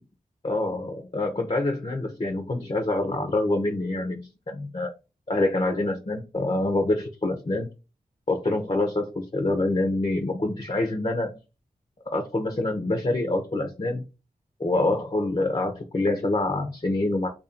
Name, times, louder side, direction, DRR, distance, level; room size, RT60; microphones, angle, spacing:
voice 1, 0.4-4.9 5.3-7.7 8.3-11.4 12.1-14.0 14.6-17.3, left 2 dB, 35° left, 3 dB, 0.9 m, -26 dB
3.0 x 2.7 x 4.3 m, 0.29 s
cardioid pair, 50°, 16 cm